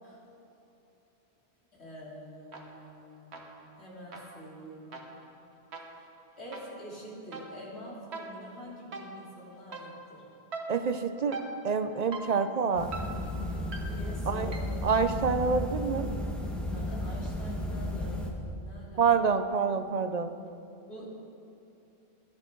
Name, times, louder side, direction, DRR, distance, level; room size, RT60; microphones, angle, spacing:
voice 1, 1.7-5.1 5.9-6.1 6.4-10.3 13.9-14.7 16.7-19.3 20.9-21.0, equal, 80° left, -6 dB, 3.7 m, -46 dB
sound 1, 2.5-3.0 3.3-14.9, right 3 dB, 80° right, 1.6 m, -44 dB
voice 2, 10.7-11.4 11.6-12.9 14.3-14.5 14.8-16.1 19.0-20.3, right 5 dB, 50° right, 10 dB, 0.5 m, -27 dB
sound 2, 12.7-18.3, left 1 dB, ahead, 1.5 m, -34 dB
17.0 x 11.5 x 3.8 m, 2.7 s
omnidirectional pair, 1.1 m